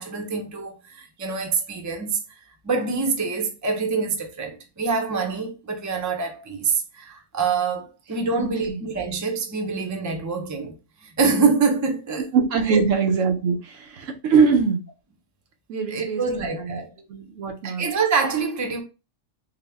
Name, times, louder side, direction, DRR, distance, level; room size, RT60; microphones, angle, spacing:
voice 1, 0.0-2.2 2.6-10.7 11.0-12.3 12.7-12.8 15.9-16.9 17.6-18.8, right 4 dB, 20° right, 0.4 m, -25 dB
voice 2, 8.4-8.8 12.3-14.8 15.7-16.8 17.1-17.8, right 5 dB, 90° right, 1.1 m, -22 dB
3.8 x 2.1 x 3.4 m
omnidirectional pair, 1.3 m